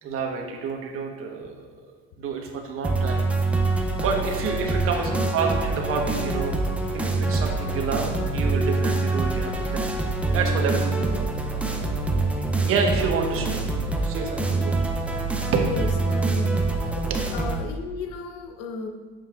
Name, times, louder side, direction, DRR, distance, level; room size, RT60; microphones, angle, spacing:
voice 1, 0.0-1.7 2.2-3.3 4.0-6.6 6.9-9.9 10.3-11.2 12.6-13.5 14.0-14.8 15.5-15.8 16.8-17.3, right 5 dB, 50° right, 2 dB, 1.2 m, -28 dB
sound 1, 2.8-17.6, right 3 dB, 5° right, 0.4 m, -25 dB
voice 2, 4.9-5.3 11.0-11.3 13.3-13.7 15.6-17.0 17.3-18.9, left 4 dB, 80° left, 4 dB, 0.9 m, -35 dB
8.9 x 7.0 x 2.4 m, 1.5 s
cardioid pair, 140°, 30 cm